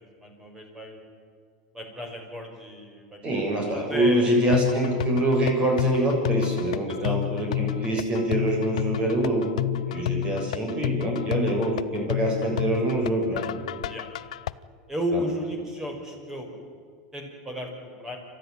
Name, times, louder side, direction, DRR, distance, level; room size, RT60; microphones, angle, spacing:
voice 1, 0.2-1.0 1.7-4.6 6.9-7.2 9.9-10.3 13.8-14.1 14.9-16.5 17.1-18.2, equal, 15° right, 3 dB, 5.2 m, -34 dB
voice 2, 3.2-9.5 9.9-13.5 15.1-15.2, right 1 dB, 30° right, 1 dB, 7.0 m, -25 dB
sound 1, 4.5-14.5, left 13 dB, 85° left, 0.6 m, -30 dB
28.0 x 13.0 x 10.0 m, 2.1 s
supercardioid pair, 120°, 4 cm